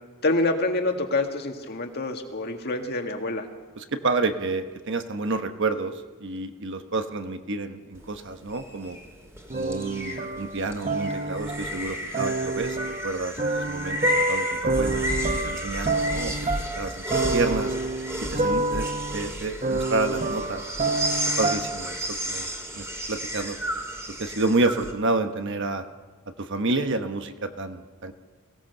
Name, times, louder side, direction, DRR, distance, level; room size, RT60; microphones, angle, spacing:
voice 1, 0.2-3.5, left 2 dB, 45° left, 4 dB, 1.9 m, -26 dB
voice 2, 3.8-9.0 9.5-12.8 13.0-15.1 15.4-16.3 16.8-17.7 18.3-20.9 21.4-22.0 22.2-22.5 22.7-23.6 24.2-25.8 26.3-28.1, right 3 dB, 55° right, 8 dB, 1.1 m, -29 dB
sound 1, 8.0-24.9, equal, 10° right, 2.2 m, -32 dB
sound 2, 9.5-11.7 12.1-21.9, right 2 dB, 30° right, 0.8 m, -28 dB
23.0 x 17.0 x 6.7 m, 1.4 s
head